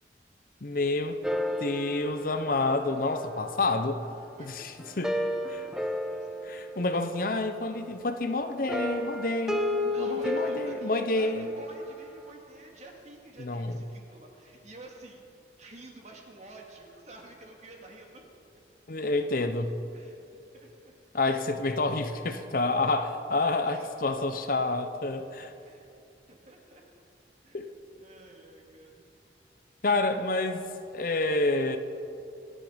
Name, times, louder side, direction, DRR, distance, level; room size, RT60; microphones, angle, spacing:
voice 1, 0.6-1.2 1.6-4.0 4.4-5.2 5.5-5.6 6.4-11.5 13.4-13.8 18.9-19.7 21.1-25.5 27.5-27.7 29.8-31.8, left 2 dB, 50° left, 8 dB, 0.8 m, -29 dB
sound 1, 1.2-4.2 4.8-7.5 8.7-12.0, left 1 dB, 5° right, 0.7 m, -33 dB
voice 2, 4.4-6.4 9.8-18.2 19.9-20.9 23.3-24.4 25.6-25.9 26.3-26.8 27.4-27.7 27.9-29.0, right 2 dB, 40° right, 1 dB, 2.2 m, -50 dB
26.5 x 9.0 x 5.1 m, 2.7 s
head